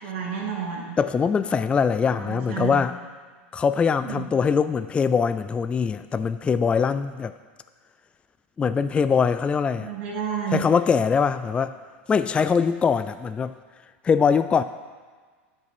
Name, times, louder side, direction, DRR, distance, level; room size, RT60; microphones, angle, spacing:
voice 1, 0.0-1.0 2.1-2.8 4.0-4.3 9.8-10.7, right 7 dB, 60° right, -4 dB, 2.3 m, -31 dB
voice 2, 1.0-3.0 3.5-7.3 8.6-9.9 10.5-11.8 12.1-13.5 14.0-14.6, left 6 dB, 15° left, 12 dB, 0.3 m, -22 dB
11.0 x 5.4 x 6.0 m, 1.5 s
hypercardioid pair, 110°, 7 cm